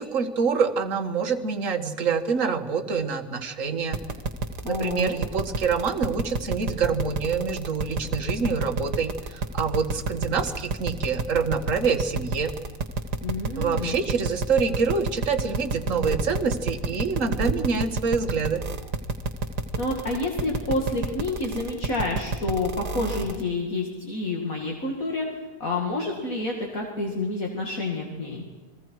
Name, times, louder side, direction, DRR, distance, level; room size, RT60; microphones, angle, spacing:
voice 1, 0.0-4.0 4.6-12.5 13.6-18.6, right 5 dB, 55° right, 7 dB, 1.8 m, -26 dB
sound 1, 3.9-23.4, right 4 dB, 85° right, 2.0 m, -28 dB
voice 2, 4.6-5.1 13.2-13.9 19.8-25.3 25.6-28.4, left 2 dB, 55° left, 0 dB, 2.8 m, -28 dB
29.5 x 22.0 x 4.7 m, 1.3 s
omnidirectional pair, 1.7 m